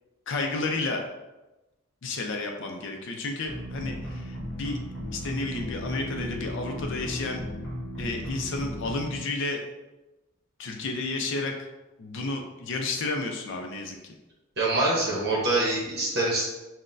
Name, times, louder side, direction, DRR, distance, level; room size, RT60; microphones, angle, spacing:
voice 1, 0.3-1.0 2.0-4.8 5.1-7.4 8.0-9.6 10.6-11.7 12.0-14.0, left 3 dB, 60° left, 3 dB, 0.4 m, -31 dB
sound 1, 3.5-9.1, equal, 5° left, 1.3 m, -35 dB
voice 2, 14.6-16.5, right 2 dB, 55° right, -4 dB, 0.8 m, -25 dB
5.9 x 2.1 x 2.5 m, 1.0 s
head